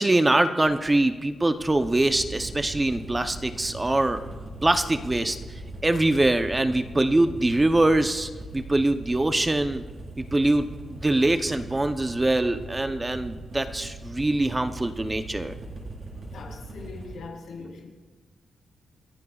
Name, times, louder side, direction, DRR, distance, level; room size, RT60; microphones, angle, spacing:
voice 1, 0.0-4.2 4.6-5.4 5.8-9.8 10.2-15.6, right 2 dB, 15° right, 8 dB, 0.7 m, -23 dB
sound 1, 0.9-17.2, right 1 dB, 35° right, 4.1 m, -40 dB
voice 2, 16.3-17.9, left 4 dB, 90° left, 0 dB, 3.6 m, -41 dB
29.5 x 15.0 x 2.4 m, 1.4 s
wide cardioid pair, 140°, 0 cm